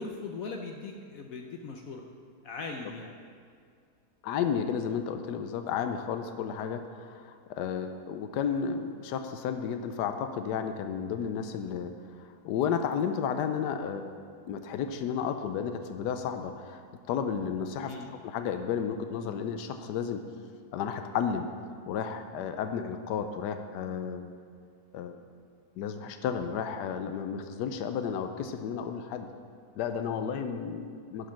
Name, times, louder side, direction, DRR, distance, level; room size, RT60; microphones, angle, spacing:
voice 1, 0.0-2.0 2.4-3.1 17.8-18.1, left 4 dB, 65° left, 2 dB, 1.0 m, -39 dB
voice 2, 4.2-11.9 12.2-14.2 14.4-20.2 20.7-21.5 21.9-24.3 24.9-25.2 25.8-29.3 29.8-31.3, left 7 dB, 80° left, 7 dB, 1.2 m, -32 dB
11.0 x 5.1 x 5.8 m, 2.2 s
omnidirectional pair, 1.8 m